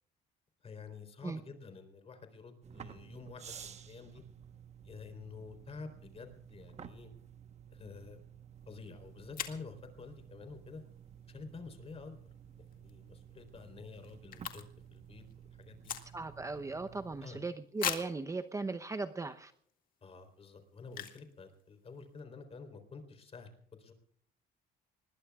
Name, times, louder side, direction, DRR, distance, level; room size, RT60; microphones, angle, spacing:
voice 1, 0.6-4.2 4.8-7.1 7.7-8.2 8.7-10.8 11.3-12.2 12.6-14.6 14.9-15.2 15.6-15.9 17.2-17.4 20.0-23.9, left 4 dB, 35° left, 7 dB, 3.8 m, -49 dB
sound 1, 2.6-17.3, right 8 dB, 40° right, 1.1 m, -53 dB
sound 2, 8.7-8.8 9.3-9.7 12.6-12.9 13.2-13.3 13.5-15.0 15.2-16.5 16.9-17.0 17.8-18.2 18.9-19.0 19.5-19.7 20.9-21.3 21.6-21.7 21.9-22.2, left 9 dB, 55° left, 2.1 m, -40 dB
voice 2, 16.1-19.5, right 3 dB, 20° right, 9 dB, 0.8 m, -38 dB
25.0 x 21.0 x 2.4 m, 0.64 s
cardioid pair, 110°, 17 cm